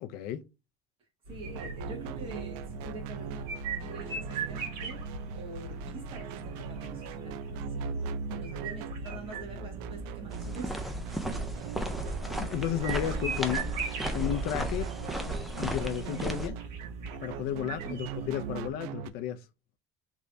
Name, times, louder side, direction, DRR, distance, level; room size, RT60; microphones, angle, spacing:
voice 1, 0.0-0.4 12.4-13.7 14.1-14.9 15.6-16.6 17.2-19.4, left 11 dB, 55° left, 0.5 m, -33 dB
voice 2, 1.3-3.5 3.8-10.9 17.8-18.1, right 2 dB, 30° right, 1.7 m, -45 dB
sound 1, 1.3-18.7, right 3 dB, 50° right, 2.1 m, -41 dB
sound 2, 1.4-19.1, right 7 dB, 90° right, 0.5 m, -40 dB
sound 3, 10.3-16.5, right 1 dB, ahead, 0.4 m, -35 dB
3.5 x 3.1 x 2.6 m
cardioid pair, 175°, 19 cm